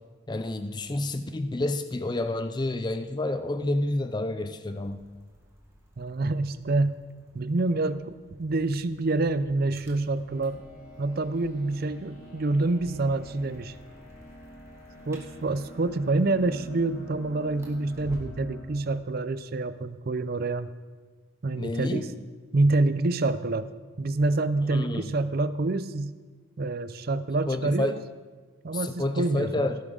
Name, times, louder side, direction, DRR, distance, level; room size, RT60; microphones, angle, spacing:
voice 1, 0.3-5.0 21.5-22.1 24.7-25.1 27.5-28.0 28.7-29.8, left 2 dB, 20° left, 9 dB, 0.4 m, -29 dB
sound 1, 4.8-18.5, equal, 15° right, 1.6 m, -52 dB
voice 2, 6.0-6.9 7.3-10.6 11.0-13.8 15.1-20.7 21.4-22.1 22.5-23.7 24.0-26.1 26.6-28.0 28.6-29.7, right 2 dB, 45° right, 13 dB, 0.5 m, -27 dB
sound 2, 10.2-18.6, equal, 35° left, 2.8 m, -48 dB
16.5 x 9.9 x 3.8 m, 1.4 s
head